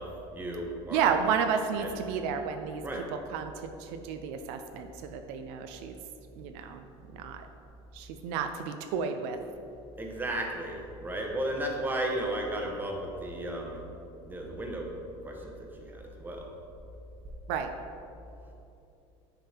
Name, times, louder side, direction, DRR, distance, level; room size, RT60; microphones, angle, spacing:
voice 1, 0.0-1.2 1.8-2.0 2.8-3.1 10.0-13.8 14.2-14.9 15.2-16.5, right 1 dB, 15° right, 0 dB, 1.0 m, -34 dB
voice 2, 0.9-2.8 3.3-5.9 6.4-6.8 7.1-7.5 7.9-9.4 17.5-17.7, right 7 dB, 75° right, 7 dB, 0.4 m, -31 dB
9.0 x 3.5 x 4.3 m, 2.7 s
supercardioid pair, 120°, 14 cm